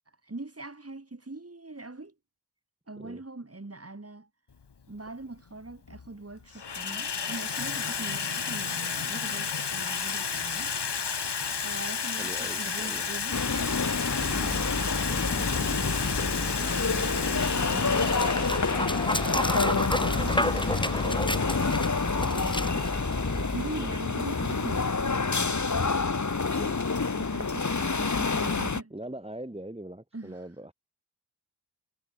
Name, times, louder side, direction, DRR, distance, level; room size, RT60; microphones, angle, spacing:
voice 1, 0.2-2.1 2.9-4.3 4.9-10.7 11.6-13.5 14.2-15.9 16.9-18.3 19.2-23.1 23.4-25.8 27.1-28.9 30.1-30.4, right 2 dB, 35° right, 6.3 m, -42 dB
Water tap faucet / Sink (filling or washing), 4.6-4.7 5.7-6.1 6.4-24.0, left 6 dB, 70° left, 3.6 m, -33 dB
voice 2, 12.2-13.1 14.2-14.5 23.7-24.0 26.5-26.8 28.9-30.7, right 1 dB, 15° right, 4.5 m, -41 dB
sound 1, 13.3-28.8, left 4 dB, 40° left, 2.5 m, -28 dB
Dog, 14.1-24.0, left 1 dB, 10° left, 6.1 m, -32 dB
cardioid pair, 50°, 43 cm